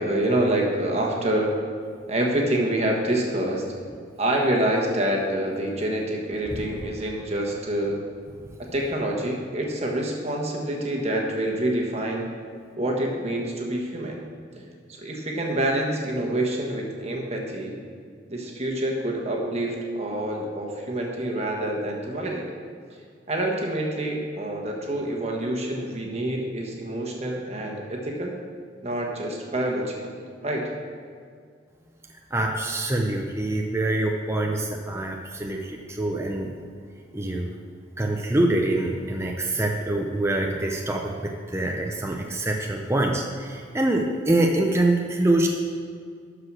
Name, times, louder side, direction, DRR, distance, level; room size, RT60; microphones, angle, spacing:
voice 1, 0.0-1.5 2.1-3.6 4.2-8.0 8.6-12.3 12.8-14.2 14.5-14.6 15.0-17.8 18.3-22.5 23.3-28.3 28.8-30.2 30.4-30.7, right 1 dB, 35° right, 0 dB, 1.4 m, -27 dB
voice 2, 32.3-36.6 37.1-37.5 38.0-41.1 41.5-45.5, right 1 dB, 15° right, 1 dB, 0.6 m, -25 dB
12.0 x 4.9 x 6.2 m, 2.1 s
head